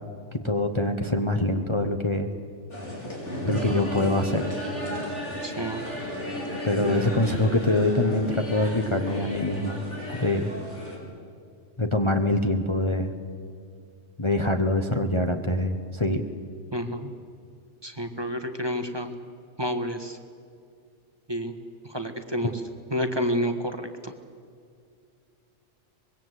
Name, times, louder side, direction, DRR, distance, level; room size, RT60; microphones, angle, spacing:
voice 1, 0.4-2.3 3.5-4.5 6.6-9.8 10.2-10.5 11.8-13.1 14.2-16.2, left 1 dB, 25° left, 5 dB, 1.2 m, -24 dB
sound 1, 2.7-11.0, equal, 70° left, 5.1 m, -34 dB
voice 2, 5.4-5.8 6.8-6.9 16.7-17.1 17.8-19.1 19.6-20.2 21.3-21.5 21.8-22.6 22.9-24.1, equal, 20° right, 6 dB, 1.5 m, -29 dB
24.5 x 22.0 x 8.2 m, 2.3 s
omnidirectional pair, 1.3 m